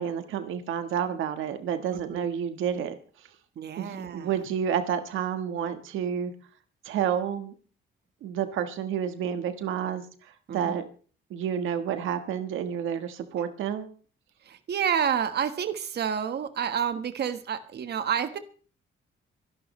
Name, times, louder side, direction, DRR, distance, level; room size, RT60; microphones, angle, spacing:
voice 1, 0.0-3.3 3.8-6.3 6.8-7.5 8.2-10.9 11.3-13.9, right 8 dB, 85° right, 8 dB, 1.5 m, -30 dB
voice 2, 1.9-2.2 3.6-4.3 10.5-10.8 13.4-13.5 14.4-18.4, right 8 dB, 55° right, 9 dB, 1.5 m, -29 dB
25.5 x 11.5 x 3.2 m, 0.40 s
cardioid pair, 90°, 20 cm